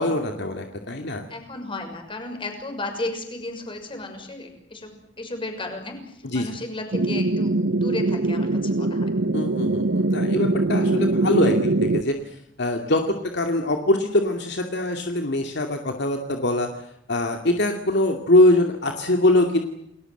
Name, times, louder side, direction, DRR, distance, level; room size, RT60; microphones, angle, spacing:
voice 1, 0.0-1.2 6.2-6.6 9.3-16.8 17.1-19.7, left 1 dB, 65° left, 4 dB, 2.5 m, -23 dB
voice 2, 1.3-6.0 6.3-9.1, left 2 dB, 30° left, 5 dB, 6.3 m, -34 dB
sound 1, 6.9-12.0, right 2 dB, 70° right, 0.9 m, -22 dB
30.0 x 20.5 x 8.0 m, 0.72 s
head